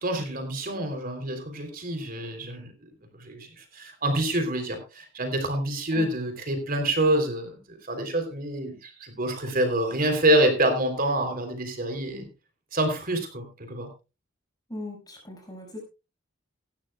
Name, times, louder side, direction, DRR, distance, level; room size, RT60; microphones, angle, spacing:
voice 1, 0.0-2.7 3.1-12.3 12.7-13.9, right 1 dB, 45° right, 6 dB, 3.3 m, -27 dB
voice 2, 14.7-15.8, left 2 dB, 20° left, -1 dB, 5.9 m, -39 dB
18.0 x 13.0 x 2.3 m, 0.29 s
head